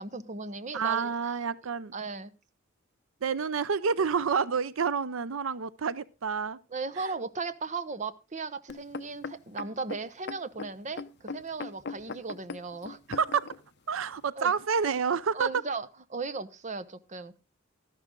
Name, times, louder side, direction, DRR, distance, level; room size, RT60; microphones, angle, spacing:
voice 1, 0.0-1.3 1.9-2.3 6.7-13.0 13.9-14.1 14.4-14.5 15.3-17.4, right 4 dB, 35° right, 0.9 m, -37 dB
voice 2, 0.7-1.9 3.2-6.6 7.0-7.1 13.1-13.5 13.9-15.5, right 6 dB, 85° right, 0.6 m, -28 dB
sound 1, 8.7-13.6 14.3-14.4, left 4 dB, 55° left, 0.7 m, -40 dB
13.0 x 11.0 x 3.7 m
head